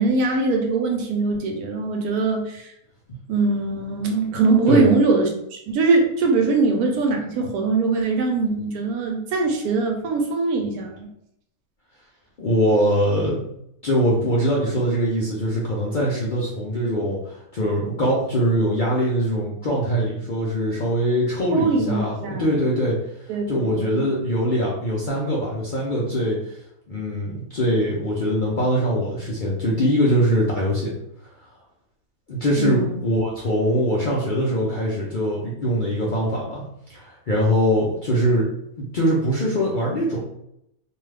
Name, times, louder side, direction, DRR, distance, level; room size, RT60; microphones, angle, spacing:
voice 1, 0.0-2.7 3.3-11.1 21.5-22.6 23.3-24.0 32.6-33.0, right 3 dB, 90° right, 2 dB, 1.2 m, -22 dB
voice 2, 12.4-13.4 13.8-23.0 23.5-26.4 26.9-30.9 32.3-36.6 36.9-40.2, equal, 55° left, -5 dB, 0.5 m, -22 dB
2.7 x 2.3 x 3.2 m, 0.76 s
omnidirectional pair, 1.6 m